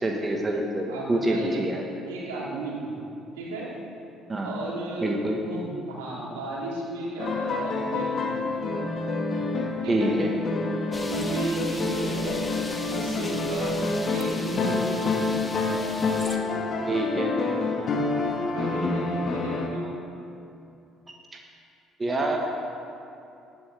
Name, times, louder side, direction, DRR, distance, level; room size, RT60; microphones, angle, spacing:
voice 1, 0.0-1.8 4.3-4.5 5.0-5.4 9.9-10.3 16.9-17.3 22.0-22.4, right 1 dB, 25° right, 1 dB, 1.5 m, -26 dB
voice 2, 0.9-1.6 2.0-3.0 3.4-3.7 4.4-5.1 5.4-8.5 9.8-10.2 11.1-13.8 14.1-15.4 18.5-19.9, right 2 dB, 70° right, -5 dB, 3.0 m, -34 dB
sound 1, 7.2-19.7, left 3 dB, 45° left, 1.7 m, -28 dB
sound 2, 10.9-16.4, left 2 dB, 20° left, 1.5 m, -39 dB
19.0 x 12.0 x 3.6 m, 2.6 s
figure-of-eight pair, 50°, 0 cm